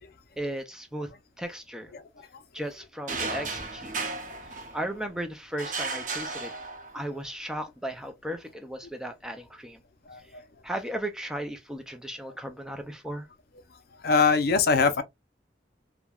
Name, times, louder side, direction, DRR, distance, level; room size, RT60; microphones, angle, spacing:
voice 1, 0.4-1.1 1.4-1.9 2.5-4.1 4.7-6.5 6.9-9.8 10.6-13.3, right 1 dB, 5° right, 0.4 m, -36 dB
sound 1, 3.1-5.1 5.6-7.1, right 3 dB, 45° right, 0.7 m, -34 dB
voice 2, 14.0-15.0, left 4 dB, 60° left, 0.5 m, -21 dB
3.3 x 2.1 x 2.2 m
head